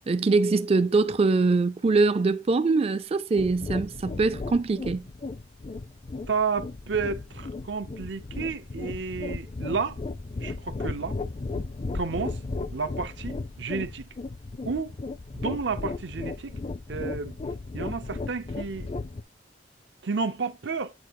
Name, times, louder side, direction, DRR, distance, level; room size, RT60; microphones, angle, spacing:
voice 1, 0.1-5.1, right 3 dB, 35° right, 0.4 m, -23 dB
sound 1, 3.4-19.2, left 3 dB, 35° left, 0.4 m, -35 dB
voice 2, 6.3-10.0 10.4-11.2 11.9-12.4 12.7-14.0 14.6-14.9 15.3-16.6 16.9-17.4 17.7-18.9 20.0-20.9, right 5 dB, 70° right, 0.7 m, -31 dB
8.7 x 4.3 x 3.0 m
head